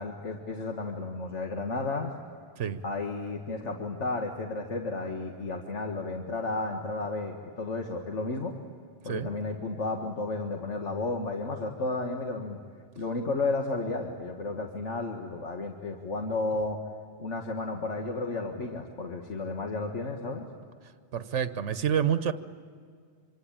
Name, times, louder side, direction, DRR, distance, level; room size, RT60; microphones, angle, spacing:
voice 1, 0.0-2.1 2.8-8.5 9.0-12.6 13.0-16.8 17.2-20.5, left 3 dB, 90° left, 2 dB, 2.0 m, -32 dB
voice 2, 21.1-22.3, right 8 dB, 90° right, 11 dB, 1.2 m, -28 dB
26.0 x 25.5 x 9.0 m, 2.1 s
omnidirectional pair, 1.2 m